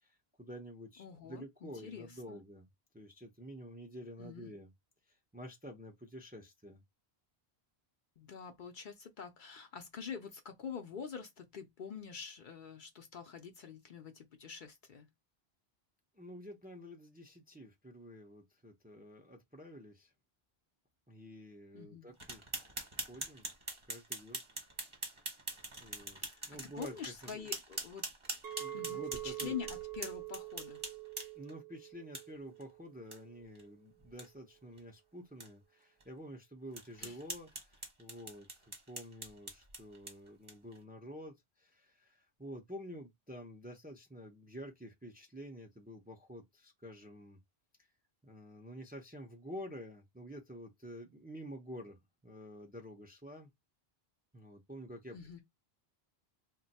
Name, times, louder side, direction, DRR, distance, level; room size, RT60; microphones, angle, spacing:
voice 1, 0.0-2.7 2.9-4.7 5.1-6.8 16.1-20.1 21.1-23.5 23.9-24.4 25.8-26.2 26.5-27.5 28.6-29.6 31.3-47.4 48.2-53.5 54.3-55.4, equal, 10° right, 0.5 m, -49 dB
voice 2, 1.0-2.4 4.2-4.5 8.2-15.1 21.7-22.1 26.2-28.1 28.7-30.8 37.0-37.2 55.1-55.4, left 7 dB, 60° left, 0.6 m, -46 dB
sound 1, 22.2-31.5 32.1-32.2 32.6-32.7 33.1-33.2 33.6-33.7 34.0-34.3 34.8-34.9 35.4-35.5 36.0-36.1 36.7-40.8, right 2 dB, 30° right, 1.0 m, -44 dB
Chink clink, 28.4-33.6, right 15 dB, 75° right, 0.8 m, -45 dB
2.5 x 2.2 x 4.0 m
omnidirectional pair, 1.1 m